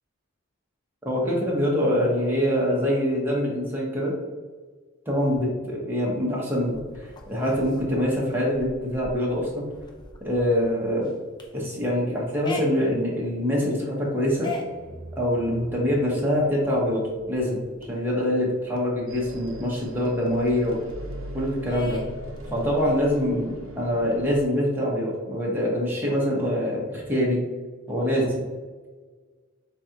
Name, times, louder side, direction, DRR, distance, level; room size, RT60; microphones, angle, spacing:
voice 1, 1.0-4.1 5.1-9.7 10.2-11.1 11.5-14.5 15.2-17.0 17.3-20.8 21.3-22.0 22.5-27.4 27.9-28.5, equal, 10° right, -4 dB, 1.0 m, -24 dB
sound 1, 6.6-18.1 18.4-18.5 18.8-21.3 21.7-23.2, left 1 dB, 20° left, 0.4 m, -42 dB
sound 2, 19.1-24.4, equal, 75° right, 0.7 m, -39 dB
7.2 x 2.4 x 2.8 m, 1.4 s
head